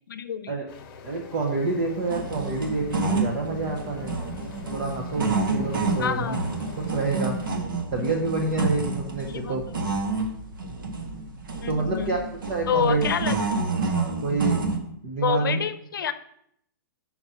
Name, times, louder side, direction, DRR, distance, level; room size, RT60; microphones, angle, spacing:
voice 1, 0.1-0.5 6.0-6.5 9.2-10.0 11.6-12.2 12.7-13.4 15.2-16.1, left 8 dB, 80° left, 11 dB, 0.7 m, -28 dB
sound 1, 0.7-7.5, left 6 dB, 20° left, 0.9 m, -44 dB
voice 2, 1.0-4.1 4.7-6.4 6.8-7.4 7.9-9.6 11.7-13.1 14.2-14.6 15.0-15.6, right 3 dB, 25° right, 1 dB, 0.6 m, -27 dB
sound 2, 2.1-14.8, right 3 dB, 80° right, 1.4 m, -29 dB
6.0 x 5.0 x 5.5 m, 0.71 s
hypercardioid pair, 175°, 11 cm